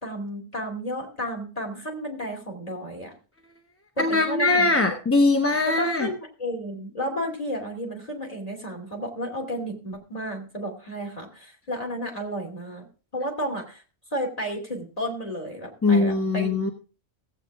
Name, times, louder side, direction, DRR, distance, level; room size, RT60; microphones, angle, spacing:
voice 1, 0.0-3.1 4.0-4.7 5.7-12.9 13.1-13.8 14.1-16.5, equal, 35° left, 2 dB, 3.0 m, -32 dB
voice 2, 4.0-6.1 15.8-16.7, left 3 dB, 15° left, 3 dB, 1.0 m, -21 dB
16.5 x 8.3 x 3.5 m, 0.35 s
omnidirectional pair, 1.1 m